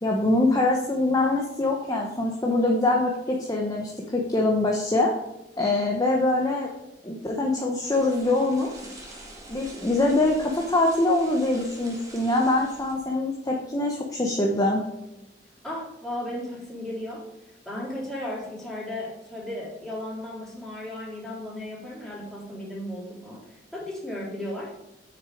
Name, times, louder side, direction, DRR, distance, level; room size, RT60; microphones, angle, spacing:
voice 1, 0.0-5.1 5.6-6.7 7.0-8.7 9.5-14.8, left 2 dB, 20° left, -1 dB, 1.0 m, -24 dB
sound 1, 7.8-13.0, right 1 dB, 20° right, 2.1 m, -45 dB
voice 2, 15.6-24.7, left 1 dB, ahead, -7 dB, 3.7 m, -35 dB
8.1 x 6.5 x 5.0 m, 0.94 s
head